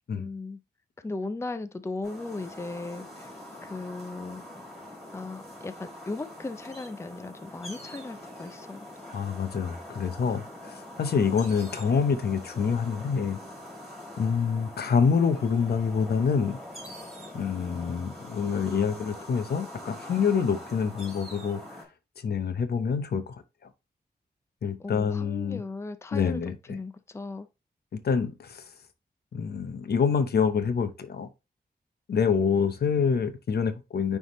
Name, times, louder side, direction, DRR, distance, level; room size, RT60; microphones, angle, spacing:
voice 1, 0.1-0.6 1.0-3.3 3.6-4.4 5.1-8.9 24.8-26.4 26.7-27.5, left 3 dB, 15° left, 0.5 m, -37 dB
sound 1, 2.0-21.8, left 1 dB, ahead, 3.3 m, -44 dB
voice 2, 9.1-13.4 14.2-16.6 17.3-21.6 22.2-23.4 24.6-25.6 26.1-26.8 27.9-28.7 29.3-31.3 32.1-34.2, left 6 dB, 75° left, 0.8 m, -26 dB
9.5 x 3.6 x 3.1 m
wide cardioid pair, 145°, 17 cm